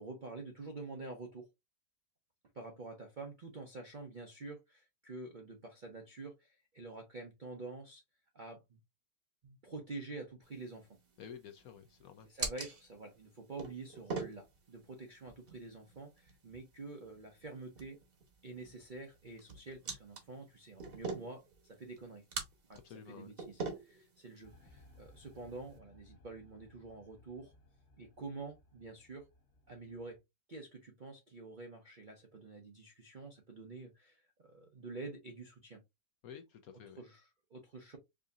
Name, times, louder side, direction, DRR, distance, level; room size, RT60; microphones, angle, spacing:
voice 1, 0.0-1.5 2.5-8.0 8.3-8.8 9.4-10.9 12.2-18.0 18.4-22.2 22.7-22.8 23.1-27.5 28.0-29.3 29.7-30.2 30.5-35.8 37.0-38.0, right 3 dB, 55° right, 0.5 m, -48 dB
sound 1, 10.4-25.8, right 4 dB, 40° right, 0.9 m, -46 dB
voice 2, 11.2-12.3 22.8-23.3 36.2-37.0, left 8 dB, 70° left, 0.9 m, -51 dB
sound 2, 24.4-30.2, left 1 dB, 45° left, 1.1 m, -63 dB
4.9 x 2.7 x 2.4 m
omnidirectional pair, 1.9 m